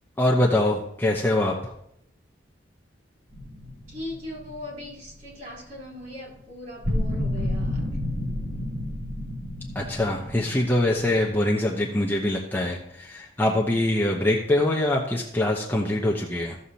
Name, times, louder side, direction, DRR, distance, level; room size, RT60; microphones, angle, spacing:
voice 1, 0.2-1.7 9.7-16.6, left 1 dB, 10° left, -2 dB, 0.8 m, -24 dB
sound 1, 3.3-5.2 6.8-11.3, left 1 dB, 85° right, 3.2 m, -30 dB
voice 2, 3.9-7.8, left 1 dB, 45° right, -3 dB, 3.8 m, -39 dB
15.5 x 6.5 x 2.8 m, 0.75 s
head